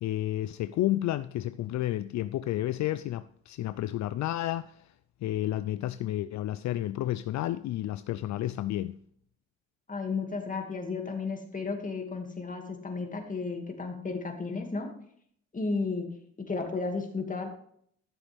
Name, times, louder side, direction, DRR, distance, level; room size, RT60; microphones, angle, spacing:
voice 1, 0.0-4.9 5.2-9.0, left 14 dB, 65° left, 0.4 m, -31 dB
voice 2, 9.9-14.9 15.5-16.1 16.5-17.5, left 4 dB, 25° left, 2.3 m, -33 dB
13.0 x 7.2 x 3.5 m
cardioid pair, 90°, 30 cm